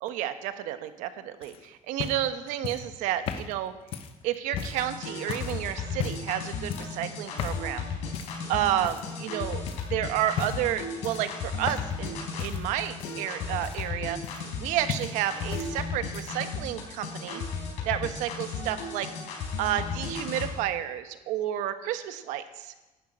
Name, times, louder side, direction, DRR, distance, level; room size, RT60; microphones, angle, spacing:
voice 1, 0.0-3.7 4.2-7.9 8.5-9.6 9.9-14.2 14.6-17.4 17.8-19.1 19.6-22.7, right 12 dB, 75° right, 10 dB, 1.2 m, -31 dB
sound 1, 1.4-4.8 5.3-5.6 5.9-6.3 6.7-7.0 7.4-7.7 8.1-8.4 8.8-9.3 9.7-9.9 10.3-10.7 11.0-12.1 12.4-14.6 14.9-15.7 16.0-16.5 17.4-17.5, left 7 dB, 45° left, 1.0 m, -36 dB
sound 2, 4.5-20.5, left 4 dB, 60° left, 4.1 m, -35 dB
12.0 x 10.5 x 8.6 m, 1.1 s
cardioid pair, 175°, 13 cm